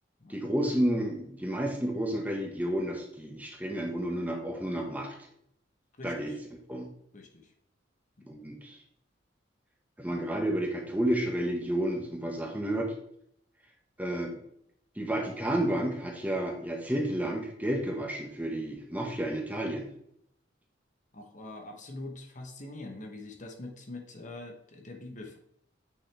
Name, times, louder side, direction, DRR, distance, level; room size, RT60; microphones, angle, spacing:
voice 1, 0.3-5.1 6.0-6.3 6.7-6.9 8.3-8.8 10.0-12.9 14.0-14.3 15.0-19.9, right 1 dB, 10° right, 1 dB, 1.4 m, -31 dB
voice 2, 6.0-6.4 7.1-7.5 8.2-8.3 21.1-25.4, left 2 dB, 40° left, 3 dB, 1.1 m, -44 dB
8.8 x 6.4 x 3.4 m, 0.72 s
head